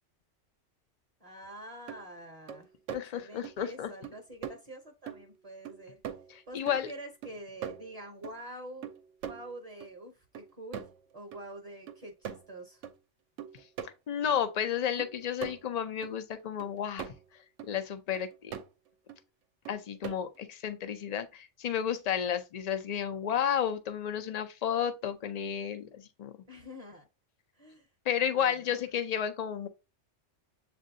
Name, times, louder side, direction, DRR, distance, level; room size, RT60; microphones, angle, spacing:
voice 1, 1.2-6.0 6.5-8.9 9.2-10.8 11.1-12.9 26.5-27.1 27.5-27.9 28.3-28.8, right 1 dB, 35° right, 0.7 m, -46 dB
sound 1, 1.4-1.5 1.9-2.0 2.5-3.0 3.4-3.6 4.0-4.2 4.4-4.6 5.1-5.4 5.6-6.4 6.7-8.4 8.8-9.9 10.3-11.0 11.3-11.4 11.9-12.9 13.4-13.9 14.3-14.4 15.0-16.1 16.6-17.3 17.6-17.7 18.1-18.7 19.1-19.2 19.6-20.4, right 8 dB, 85° right, 0.9 m, -42 dB
voice 2, 2.9-3.9 6.3-6.9 14.1-17.1 17.7-18.5 19.7-26.3 28.1-29.7, left 9 dB, 60° left, 0.4 m, -32 dB
7.3 x 2.5 x 2.6 m
omnidirectional pair, 1.3 m